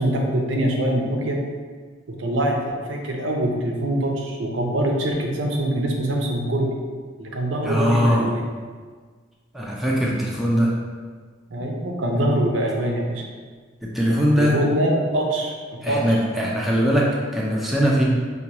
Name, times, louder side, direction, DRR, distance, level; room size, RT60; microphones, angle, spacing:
voice 1, 0.0-1.4 2.1-6.8 7.2-8.4 11.5-13.2 14.1-16.2, right 1 dB, 75° right, 1 dB, 0.6 m, -24 dB
voice 2, 7.6-8.3 9.5-10.7 13.8-14.6 15.8-18.0, equal, ahead, -4 dB, 0.4 m, -21 dB
4.8 x 2.3 x 2.8 m, 1.5 s
head